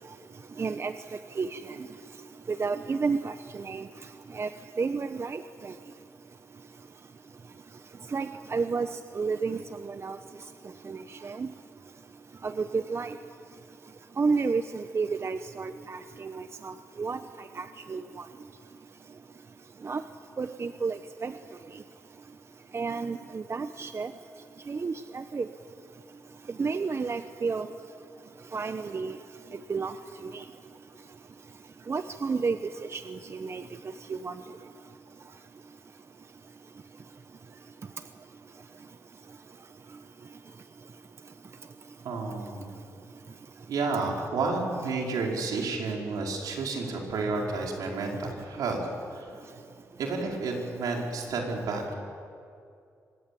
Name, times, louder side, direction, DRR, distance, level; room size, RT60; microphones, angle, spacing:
voice 1, 0.6-0.9 1.4-1.8 2.5-3.3 3.6-3.8 4.3-4.5 4.8-5.7 8.1-8.9 9.2-10.2 10.9-11.5 12.4-13.1 14.2-17.2 17.6-18.0 19.8-20.0 20.4-21.3 22.7-24.1 24.7-25.5 26.6-27.7 28.5-29.2 29.7-29.9 30.2-30.4 31.9-32.6 32.9-33.6 34.1-34.3, right 4 dB, 45° right, 10 dB, 1.0 m, -31 dB
voice 2, 42.0-42.8 43.7-48.9 49.1-49.3 50.0-51.9, right 3 dB, 80° right, 0 dB, 5.0 m, -31 dB
25.0 x 21.5 x 8.6 m, 2.4 s
supercardioid pair, 55°, 6 cm